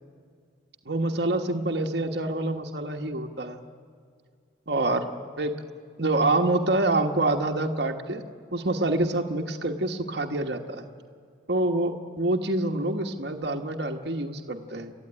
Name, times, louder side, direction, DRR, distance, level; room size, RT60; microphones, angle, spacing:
voice 1, 0.9-3.6 4.7-5.1 5.4-5.5 6.0-8.2 8.5-10.9 11.5-14.9, right 2 dB, 55° right, 3 dB, 1.3 m, -26 dB
28.5 x 13.5 x 9.8 m, 2.2 s
head